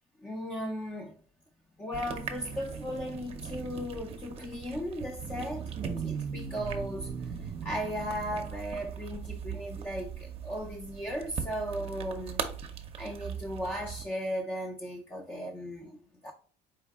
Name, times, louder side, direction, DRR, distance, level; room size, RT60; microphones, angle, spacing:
voice 1, 0.2-1.1 1.8-12.4 13.0-16.3, equal, 10° left, 0.5 m, -36 dB
sound 1, 1.9-14.1, right 7 dB, 35° right, 0.6 m, -39 dB
4.6 x 2.6 x 3.5 m
cardioid pair, 135°, 16 cm